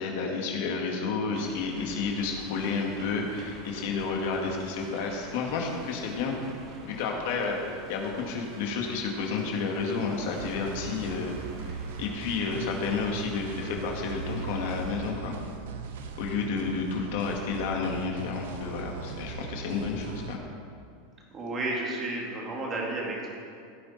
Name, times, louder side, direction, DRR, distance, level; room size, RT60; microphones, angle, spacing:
voice 1, 0.0-6.3 6.8-11.3 12.0-15.4 16.2-20.4, left 4 dB, 55° left, 0 dB, 2.2 m, -31 dB
sound 1, 1.3-15.1, right 2 dB, 40° right, 1.8 m, -47 dB
sound 2, 10.4-20.4, right 6 dB, 80° right, 1.1 m, -39 dB
voice 2, 21.3-23.3, right 2 dB, 20° right, -3 dB, 2.3 m, -32 dB
16.0 x 9.5 x 4.4 m, 2.3 s
supercardioid pair, 170°, 0 cm